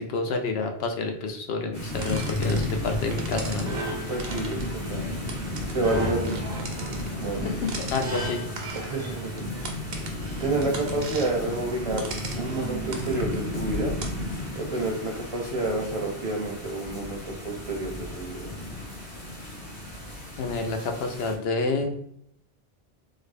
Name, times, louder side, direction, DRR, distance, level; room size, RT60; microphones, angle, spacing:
voice 1, 0.0-3.7 7.4-8.4 20.4-22.0, left 3 dB, 80° left, 5 dB, 0.8 m, -29 dB
sound 1, 1.7-21.3, left 1 dB, 55° left, 1.4 m, -34 dB
sound 2, 1.9-14.3, right 2 dB, 70° right, 0.9 m, -37 dB
voice 2, 4.1-5.0 5.7-6.4 7.2-7.4 8.7-9.4 10.4-12.1 12.3-13.9 14.5-18.5, right 2 dB, 40° right, 0 dB, 0.6 m, -29 dB
3.7 x 2.1 x 3.2 m, 0.70 s
omnidirectional pair, 1.0 m